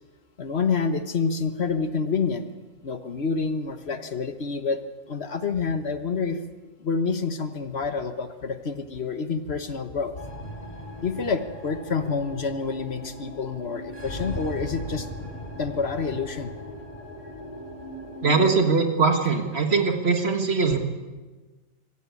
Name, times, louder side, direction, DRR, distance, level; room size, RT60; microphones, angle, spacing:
voice 1, 0.4-2.5 2.8-4.8 5.1-6.4 6.8-10.1 11.0-15.1 15.6-16.5, left 5 dB, 55° left, 9 dB, 1.4 m, -28 dB
sound 1, 10.2-18.5, equal, 30° left, 2.8 m, -38 dB
voice 2, 18.2-20.8, right 4 dB, 55° right, 5 dB, 1.9 m, -21 dB
24.5 x 14.5 x 8.4 m, 1.3 s
omnidirectional pair, 1.3 m